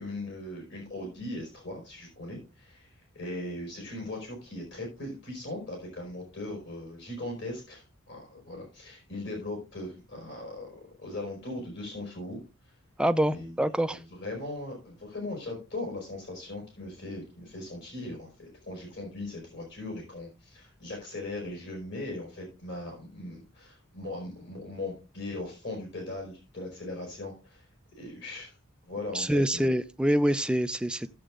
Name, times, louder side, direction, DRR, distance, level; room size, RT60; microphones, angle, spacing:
voice 1, 0.0-12.4 13.3-13.5 13.9-27.6 27.9-28.5 28.8-29.7, left 2 dB, 60° left, 4.9 m, -39 dB
voice 2, 13.0-14.0 29.1-31.1, equal, 5° right, 0.5 m, -26 dB
15.5 x 7.8 x 2.5 m
head